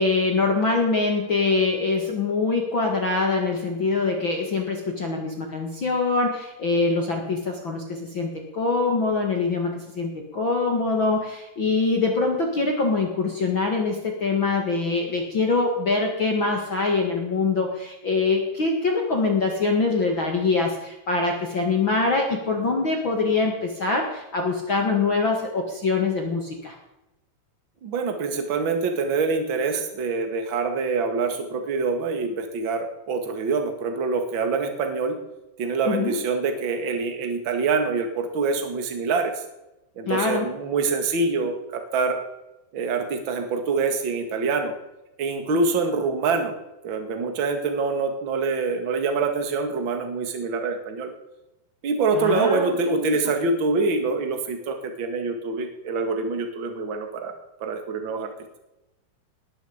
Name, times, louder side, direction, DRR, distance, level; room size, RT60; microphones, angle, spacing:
voice 1, 0.0-26.7 35.8-36.2 40.1-40.5 52.1-53.3, left 3 dB, 45° left, 2 dB, 1.7 m, -24 dB
voice 2, 27.8-35.2 35.6-39.3 40.0-42.2 42.7-44.7 45.2-46.5 46.8-51.1 51.8-57.4 57.6-58.3, right 4 dB, 40° right, 6 dB, 2.0 m, -25 dB
19.5 x 11.5 x 5.2 m, 0.95 s
omnidirectional pair, 4.8 m